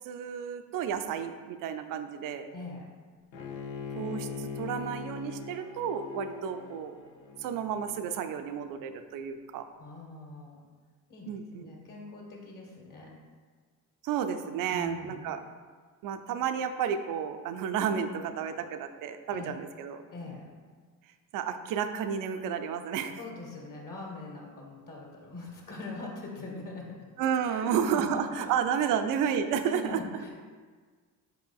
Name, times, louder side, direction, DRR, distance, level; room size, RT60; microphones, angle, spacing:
voice 1, 0.0-2.5 4.0-6.9 7.4-9.6 11.3-11.7 14.0-15.4 16.0-20.0 21.3-23.2 27.2-30.0, right 8 dB, 45° right, 8 dB, 0.4 m, -31 dB
voice 2, 2.5-2.9 9.8-10.6 11.1-13.1 14.7-15.3 19.3-19.6 20.1-20.4 23.2-27.0 27.4-28.6 29.7-30.3, left 3 dB, 40° left, -2 dB, 1.5 m, -42 dB
Bowed string instrument, 3.3-8.4, left 5 dB, 85° left, 0.6 m, -41 dB
4.8 x 4.8 x 2.3 m, 1.5 s
hypercardioid pair, 55°, 50 cm